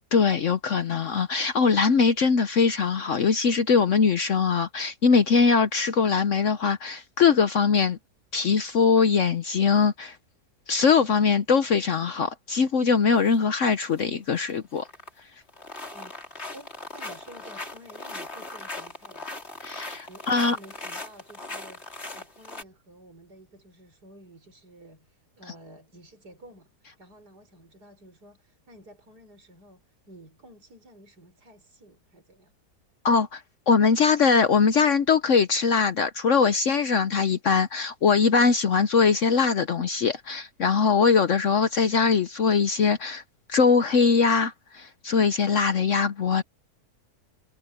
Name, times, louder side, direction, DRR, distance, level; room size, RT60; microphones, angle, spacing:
voice 1, 0.1-8.0 8.3-10.2 10.7-14.9 19.6-20.6 33.0-43.2 43.5-46.4, left 5 dB, 55° left, 1.1 m, -22 dB
sound 1, 13.2-13.4 13.7-14.1 14.4-15.2 15.5-22.6, left 2 dB, 40° left, 4.2 m, -39 dB
voice 2, 15.9-19.3 20.1-32.5, right 1 dB, 75° right, 6.4 m, -51 dB
omnidirectional pair, 1.7 m